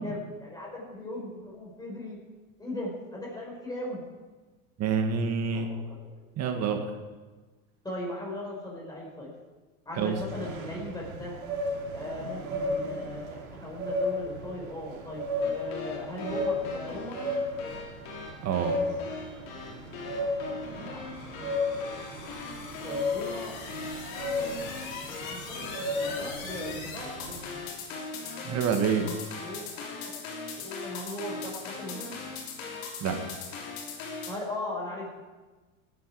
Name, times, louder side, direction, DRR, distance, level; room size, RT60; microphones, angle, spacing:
voice 1, 0.0-2.2 2.6-4.0 5.5-5.8 7.8-9.3 9.8-11.4 11.9-17.2 20.4-21.0 21.7-21.8 22.8-23.9 24.4-24.7 25.2-28.0 29.0-30.1 30.6-32.1 34.3-35.2, left 1 dB, 10° left, -3 dB, 5.0 m, -39 dB
voice 2, 4.8-5.7 6.4-6.8 10.0-10.1 18.4-18.8 28.4-29.1 33.0-33.3, right 6 dB, 40° right, 5 dB, 1.8 m, -27 dB
sound 1, 10.0-27.4, left 1 dB, 90° right, 2.9 m, -34 dB
sound 2, 15.4-34.3, left 4 dB, 70° left, 3.5 m, -39 dB
18.5 x 9.5 x 4.8 m, 1.3 s
supercardioid pair, 125°, 42 cm